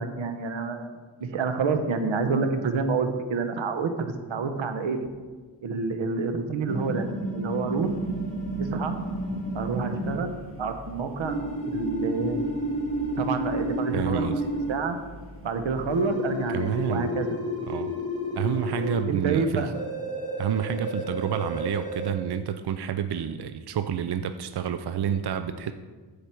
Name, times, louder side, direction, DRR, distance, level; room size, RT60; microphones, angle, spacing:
voice 1, 0.0-5.1 5.6-7.1 7.3-8.1 8.6-8.9 9.5-11.4 11.7-12.5 13.2-14.4 14.7-15.0 15.4-17.3 19.1-19.7, right 4 dB, 85° right, 7 dB, 1.0 m, -28 dB
sound 1, 6.7-10.2 11.2-14.8 15.9-19.0 19.7-22.1, equal, 15° left, 2.4 m, -31 dB
sound 2, 7.8-16.1, left 1 dB, 30° right, 2.5 m, -46 dB
voice 2, 13.9-14.4 16.5-17.1 17.7-17.9 18.4-19.6 20.4-25.7, right 9 dB, 60° right, 9 dB, 0.6 m, -29 dB
14.5 x 5.1 x 4.5 m, 1.4 s
cardioid pair, 70°, 45 cm